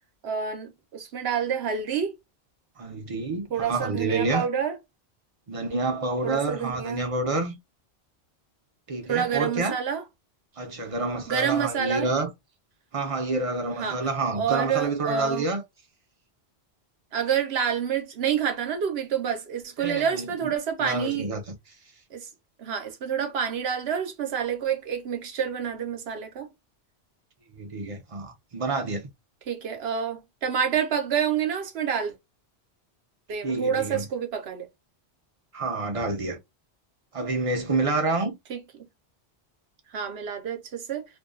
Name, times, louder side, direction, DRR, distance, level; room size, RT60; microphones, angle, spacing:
voice 1, 0.2-2.1 3.5-4.8 6.2-7.1 9.1-10.0 11.3-12.1 13.8-14.0 14.3-15.5 17.1-21.3 22.1-22.3 22.6-26.5 29.5-32.1 33.3-34.7 38.5-38.6 39.9-41.0, right 7 dB, 70° right, 1.0 m, -28 dB
voice 2, 2.8-4.5 5.5-7.6 8.9-9.8 10.6-12.3 12.9-15.6 19.8-20.5 20.8-21.6 27.5-29.1 33.4-34.1 35.5-36.4 37.1-38.3, right 3 dB, 40° right, 0.6 m, -28 dB
2.6 x 2.3 x 2.3 m
omnidirectional pair, 1.1 m